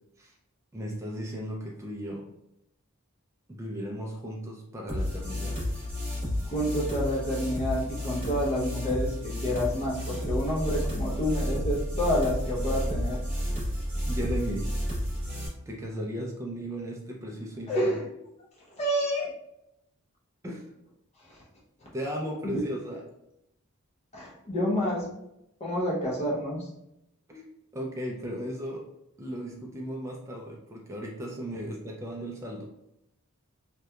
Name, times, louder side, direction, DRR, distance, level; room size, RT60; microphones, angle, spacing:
voice 1, 0.7-2.2 3.5-5.6 13.5-13.6 14.1-14.7 15.7-17.9 20.4-20.7 21.9-23.0 27.3-27.4 27.7-28.8 29.2-32.7, equal, 15° right, -1 dB, 0.3 m, -36 dB
sound 1, 4.9-15.5, equal, 30° right, 1.0 m, -31 dB
voice 2, 6.5-13.2 17.7-18.1 18.8-19.4 21.2-21.4 22.4-22.7 24.1-25.1 25.6-26.7, equal, 30° left, -4 dB, 0.6 m, -29 dB
2.8 x 2.2 x 2.2 m, 0.82 s
head